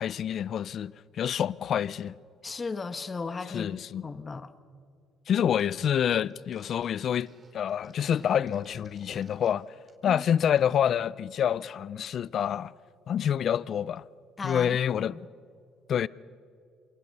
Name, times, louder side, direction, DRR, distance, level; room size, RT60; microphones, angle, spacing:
voice 1, 0.0-2.1 3.5-4.0 5.3-7.3 7.5-9.7 10.0-12.7 13.1-14.0 14.4-15.2 15.9-16.1, left 9 dB, 60° left, 0.6 m, -27 dB
voice 2, 2.4-3.7 4.0-4.5 10.0-10.2 14.4-15.2, left 4 dB, 30° left, 1.4 m, -36 dB
sound 1, 5.6-5.7 5.9-9.5 9.8-10.1 10.4-10.9, right 4 dB, 40° right, 3.7 m, -59 dB
28.0 x 25.0 x 5.5 m
supercardioid pair, 75°, 0 cm